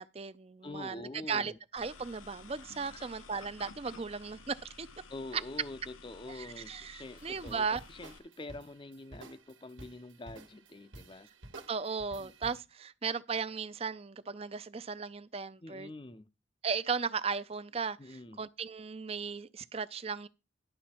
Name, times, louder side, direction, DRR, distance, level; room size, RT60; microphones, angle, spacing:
voice 1, 0.0-4.9 6.3-7.8 11.7-15.9 16.6-20.3, right 5 dB, 30° right, 0.5 m, -36 dB
voice 2, 0.6-1.6 2.9-3.1 5.1-11.3 12.2-12.3 15.6-16.3 18.0-18.4, left 2 dB, 25° left, 0.5 m, -46 dB
sound 1, 1.8-8.2, left 4 dB, 90° left, 0.9 m, -53 dB
sound 2, 7.0-12.6, right 2 dB, 80° right, 1.5 m, -53 dB
11.0 x 7.0 x 4.4 m
head